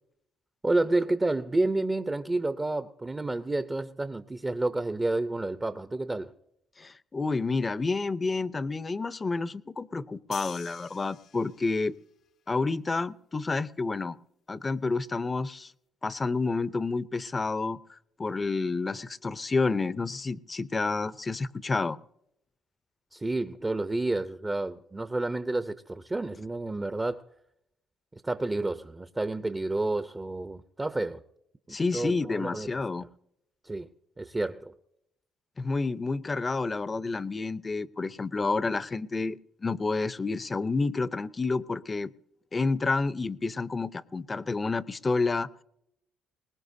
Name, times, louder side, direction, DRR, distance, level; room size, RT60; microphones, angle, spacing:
voice 1, 0.6-6.3 23.1-27.2 28.1-31.2 31.7-32.7 33.6-33.9 34.2-34.7, right 2 dB, 20° right, 0.7 m, -30 dB
voice 2, 6.8-12.0 12.5-14.2 14.5-15.7 16.0-22.0 31.7-33.1 35.6-42.1 42.5-45.5, left 3 dB, 30° left, 0.6 m, -29 dB
sound 1, 10.3-11.9, left 8 dB, 65° left, 0.8 m, -46 dB
22.0 x 19.5 x 2.7 m
supercardioid pair, 75°, 0 cm